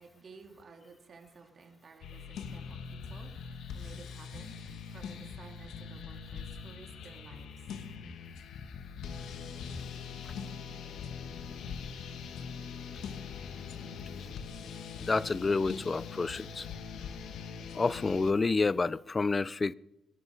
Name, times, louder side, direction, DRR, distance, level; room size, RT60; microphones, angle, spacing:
voice 1, 0.0-7.5, right 4 dB, 45° right, 3.0 m, -53 dB
sound 1, 2.0-18.3, left 6 dB, 75° left, 1.6 m, -42 dB
voice 2, 15.0-16.7 17.7-19.7, left 3 dB, 30° left, 0.5 m, -29 dB
22.5 x 12.0 x 4.9 m
cardioid pair, 90°, 0 cm